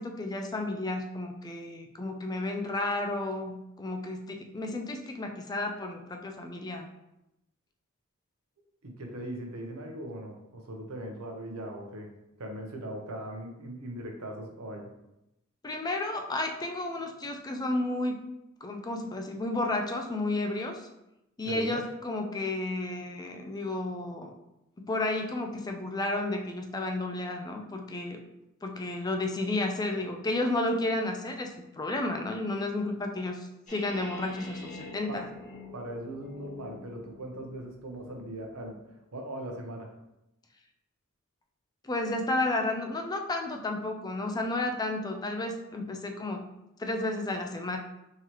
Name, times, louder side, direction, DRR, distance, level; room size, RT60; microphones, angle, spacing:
voice 1, 0.0-6.9 15.6-18.2 18.6-20.9 21.4-24.3 24.8-28.2 28.6-35.3 41.8-46.4 46.8-47.8, left 2 dB, 20° left, 3 dB, 0.3 m, -32 dB
voice 2, 8.8-12.1 12.4-14.9 21.4-21.8 35.1-35.2 35.7-38.8 39.1-39.9, right 1 dB, 70° right, 2 dB, 0.7 m, -39 dB
sound 1, 33.7-37.7, left 2 dB, 35° left, 1.1 m, -45 dB
3.8 x 2.9 x 2.9 m, 0.89 s
head